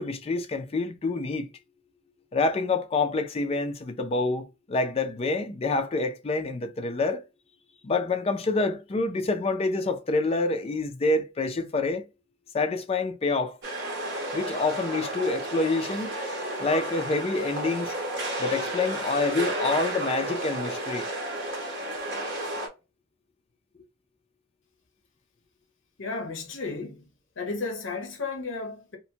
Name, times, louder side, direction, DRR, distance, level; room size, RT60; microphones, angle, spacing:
voice 1, 0.0-1.5 2.3-7.2 7.8-12.0 12.5-13.6 14.3-16.2 16.6-17.9 18.4-21.1, left 3 dB, 30° left, 0.4 m, -27 dB
sound 1, 13.6-22.7, right 1 dB, 60° right, 0.8 m, -32 dB
voice 2, 26.0-27.1 27.4-29.0, left 3 dB, 75° left, 0.7 m, -33 dB
2.7 x 2.1 x 2.7 m
head